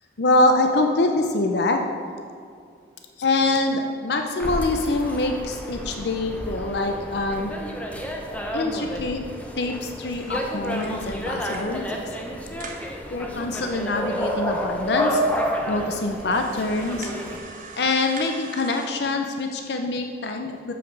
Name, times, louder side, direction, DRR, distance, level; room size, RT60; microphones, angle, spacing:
voice 1, 0.2-1.8 3.2-7.5 8.5-9.2 9.6-12.0 13.1-15.2 15.7-17.1 17.8-20.7, left 2 dB, 65° left, 4 dB, 0.6 m, -24 dB
sound 1, 4.4-17.4, equal, 10° left, 0.8 m, -30 dB
sound 2, 10.2-11.8 12.2-12.3 12.5-12.9 13.6-13.7 13.9-14.0 14.7-14.8 15.3-15.4 16.1-18.9, right 4 dB, 45° right, 1.0 m, -42 dB
7.3 x 5.9 x 6.0 m, 2.3 s
head